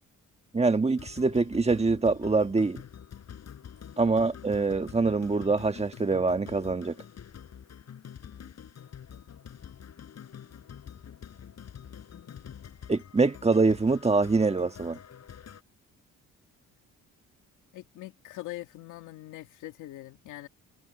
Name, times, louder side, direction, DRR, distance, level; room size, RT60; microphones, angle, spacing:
voice 1, 0.5-2.8 4.0-6.9 12.9-15.0, right 3 dB, 20° right, 1.5 m, -24 dB
sound 1, 1.0-15.6, left 8 dB, 60° left, 7.5 m, -47 dB
voice 2, 17.7-20.5, left 16 dB, 90° left, 2.4 m, -43 dB
cardioid pair, 90°, 30 cm